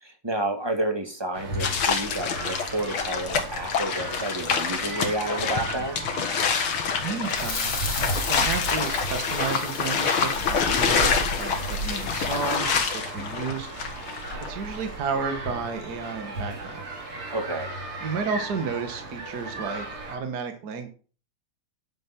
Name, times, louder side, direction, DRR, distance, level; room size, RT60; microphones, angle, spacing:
voice 1, 0.0-6.0 17.3-17.7, right 1 dB, 10° right, 4 dB, 2.0 m, -30 dB
sound 1, 1.3-20.2, right 2 dB, 80° right, 4.3 m, -35 dB
sound 2, 1.6-14.5, left 6 dB, 75° left, 2.4 m, -27 dB
voice 2, 7.0-13.7 14.5-16.8 18.0-20.9, right 5 dB, 50° right, 7 dB, 1.8 m, -32 dB
sound 3, 7.3-12.6, left 5 dB, 60° left, 2.8 m, -36 dB
10.0 x 7.4 x 6.0 m, 0.38 s
omnidirectional pair, 2.3 m